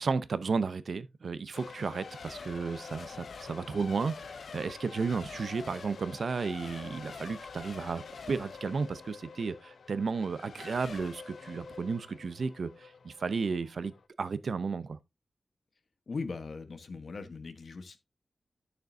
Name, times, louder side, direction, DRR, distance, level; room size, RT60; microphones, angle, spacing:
voice 1, 0.0-4.1 4.5-13.9 14.2-15.0, right 4 dB, 65° right, 0.6 m, -33 dB
Race car auto racing / Accelerating revving vroom / Mechanisms, 1.5-14.0, left 5 dB, 75° left, 0.8 m, -46 dB
voice 2, 16.1-18.0, left 4 dB, 55° left, 1.2 m, -39 dB
12.0 x 6.6 x 2.7 m
wide cardioid pair, 145°, 0 cm